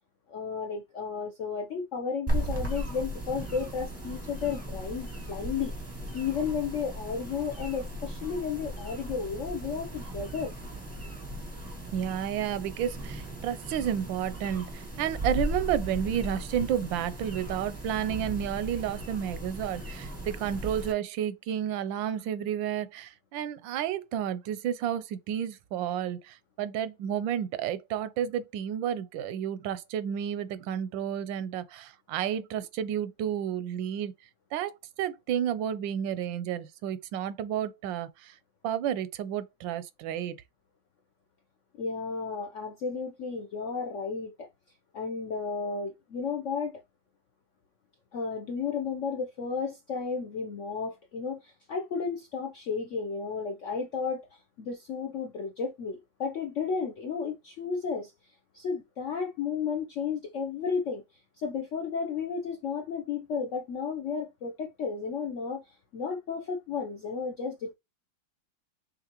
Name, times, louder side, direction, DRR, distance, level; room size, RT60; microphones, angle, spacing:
voice 1, 0.3-5.7 6.1-10.5 41.8-44.5 44.9-46.8 48.1-58.1 58.5-61.0 61.4-67.7, left 5 dB, 70° left, 0.7 m, -33 dB
sound 1, 2.3-20.9, equal, 15° right, 0.6 m, -37 dB
voice 2, 11.9-34.1 34.5-34.7 35.0-38.3 38.6-40.4, right 9 dB, 85° right, 1.3 m, -31 dB
6.6 x 2.7 x 2.9 m
omnidirectional pair, 2.0 m